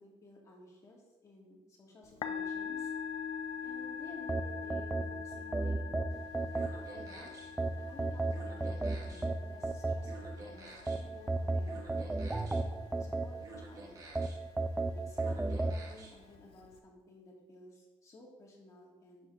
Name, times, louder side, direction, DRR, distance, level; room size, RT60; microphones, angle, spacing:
voice 1, 0.0-2.9 3.6-5.9 6.7-7.3 7.7-12.5 12.9-14.0 14.9-19.3, left 1 dB, 30° left, -2 dB, 2.0 m, -55 dB
Musical instrument, 2.0-16.8, left 7 dB, 70° left, 0.5 m, -44 dB
sound 1, 4.3-7.1 7.6-10.4 10.9-13.7 14.2-15.8, right 2 dB, 10° right, 0.3 m, -33 dB
sound 2, 6.1-16.3, right 2 dB, 35° right, 1.2 m, -53 dB
7.6 x 4.3 x 5.8 m, 1.2 s
cardioid pair, 150°, 10 cm